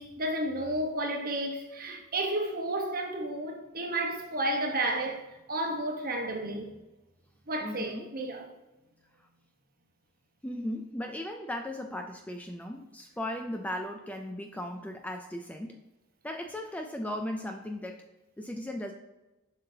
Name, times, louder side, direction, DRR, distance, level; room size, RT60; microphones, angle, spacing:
voice 1, 0.0-5.2 5.5-6.7 7.5-8.4, right 1 dB, 45° right, 1.0 m, -32 dB
voice 2, 7.6-8.1 10.4-15.8 16.2-18.0 18.4-18.9, left 1 dB, 5° left, 0.3 m, -37 dB
7.4 x 5.6 x 2.7 m
head